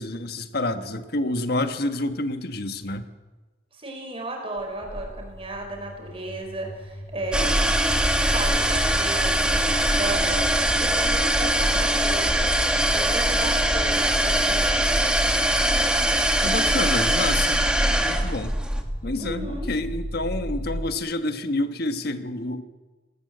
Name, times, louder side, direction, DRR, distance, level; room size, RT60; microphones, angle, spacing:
voice 1, 0.0-3.0 16.4-17.7 18.0-18.6 19.0-22.6, left 2 dB, 55° left, 9 dB, 1.4 m, -28 dB
voice 2, 3.7-7.6 8.3-12.5 12.9-14.7 19.2-19.7, right 2 dB, 30° right, 2 dB, 5.3 m, -34 dB
sound 1, 4.6-20.9, equal, 15° left, 0.9 m, -36 dB
sound 2, 7.3-18.8, right 1 dB, 5° right, 1.6 m, -22 dB
19.0 x 19.0 x 7.9 m, 1.2 s
head